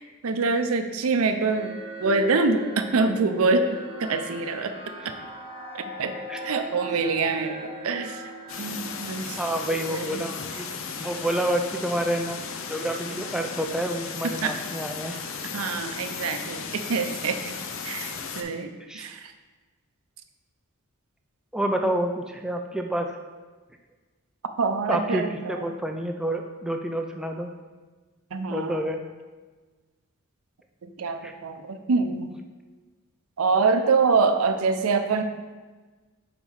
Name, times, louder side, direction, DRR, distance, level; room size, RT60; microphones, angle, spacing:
voice 1, 0.2-3.7 4.0-4.7 5.7-6.1 6.4-8.2 8.6-9.4 9.9-10.2 14.4-14.5 15.5-17.6 17.8-18.1 18.4-19.2 24.6-25.6 28.3-28.8 31.0-32.3 33.4-35.2, right 4 dB, 75° right, 7 dB, 0.5 m, -25 dB
sound 1, 1.1-10.6, right 1 dB, 25° right, 0.9 m, -39 dB
sound 2, 8.5-18.4, left 5 dB, 60° left, 0.5 m, -35 dB
voice 2, 9.4-10.7 11.0-12.4 12.7-15.2 18.9-19.1 21.5-23.1 24.9-27.5 28.5-29.0 31.2-31.3, right 1 dB, 5° right, 3 dB, 0.3 m, -28 dB
5.6 x 4.0 x 4.7 m, 1.3 s
head